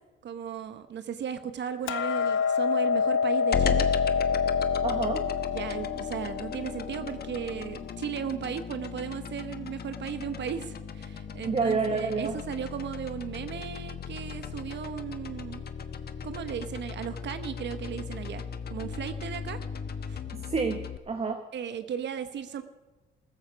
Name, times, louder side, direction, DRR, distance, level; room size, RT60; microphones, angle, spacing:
voice 1, 0.2-3.9 5.5-15.6 16.2-18.4 18.7-19.6 20.1-20.2 21.5-22.6, right 8 dB, 65° right, 10 dB, 1.0 m, -36 dB
Hammer, 1.9-8.1, left 6 dB, 85° left, 0.8 m, -28 dB
sound 1, 3.5-21.0, left 7 dB, 55° left, 1.2 m, -36 dB
voice 2, 4.8-5.3 11.5-12.4 20.4-20.8 21.1-21.4, right 4 dB, 30° right, 6 dB, 1.3 m, -28 dB
15.0 x 14.0 x 6.2 m, 1.2 s
cardioid pair, 90°, 20 cm